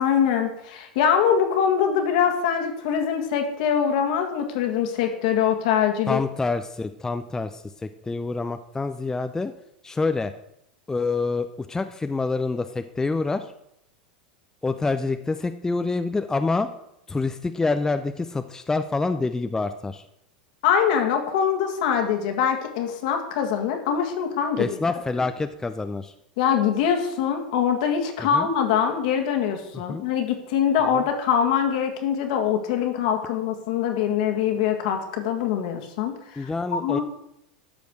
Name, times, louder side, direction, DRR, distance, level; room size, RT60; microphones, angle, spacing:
voice 1, 0.0-6.2 20.6-24.8 26.4-36.5 36.8-37.0, left 8 dB, 60° left, 4 dB, 2.0 m, -23 dB
voice 2, 6.1-9.5 9.8-10.3 10.9-13.5 14.6-16.7 17.1-20.0 24.6-26.1 28.2-28.5 29.9-30.0 30.9-31.0 36.4-37.0, left 3 dB, 10° left, 9 dB, 0.6 m, -27 dB
12.5 x 5.1 x 6.4 m, 0.80 s
hypercardioid pair, 90°, 5 cm